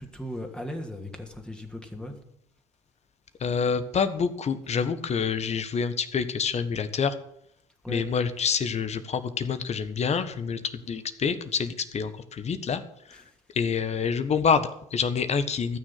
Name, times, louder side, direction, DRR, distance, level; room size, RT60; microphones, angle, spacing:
voice 1, 0.0-2.2 7.8-8.1 13.1-13.3, equal, 5° left, 3 dB, 2.7 m, -37 dB
voice 2, 3.4-7.1 7.9-10.6 10.9-12.8 13.5-15.8, left 6 dB, 40° left, 12 dB, 1.4 m, -27 dB
14.0 x 6.4 x 9.4 m, 0.72 s
hypercardioid pair, 60°, 16 cm